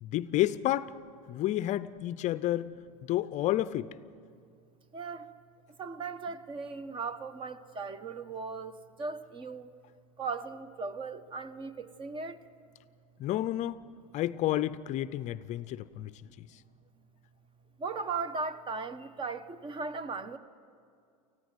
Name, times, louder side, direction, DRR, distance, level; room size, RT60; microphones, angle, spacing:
voice 1, 0.0-0.9 1.3-2.7 3.1-4.0 13.2-13.8 14.1-16.6, left 14 dB, 40° left, 0.6 m, -30 dB
voice 2, 4.9-5.3 5.8-9.7 10.2-12.4 17.8-20.4, right 4 dB, 30° right, 1.1 m, -37 dB
19.5 x 15.0 x 9.2 m
hypercardioid pair, 105°, 18 cm